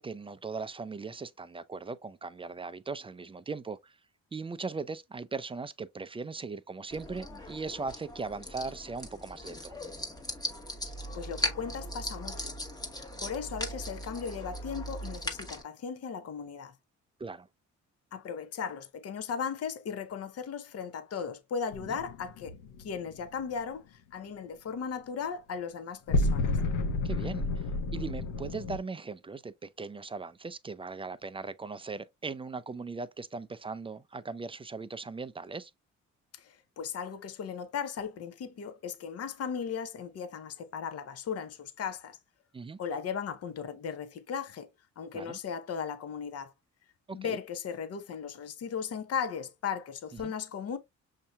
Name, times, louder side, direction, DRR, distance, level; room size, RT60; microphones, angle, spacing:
voice 1, 0.0-4.0 4.3-9.7 17.2-17.5 21.8-22.0 27.0-35.7 42.5-42.8 45.1-45.4 47.1-47.4 50.1-50.3, right 4 dB, 20° right, 0.4 m, -39 dB
sound 1, 6.9-15.6, equal, 15° left, 1.1 m, -38 dB
voice 2, 11.1-12.5 13.2-16.7 18.1-26.6 36.3-42.2 42.8-44.7 45.0-46.5 47.1-50.8, left 6 dB, 55° left, 0.8 m, -37 dB
sound 2, 21.7-23.2 26.1-28.8, left 2 dB, 90° left, 0.8 m, -30 dB
6.5 x 2.8 x 2.2 m
cardioid pair, 90°, 30 cm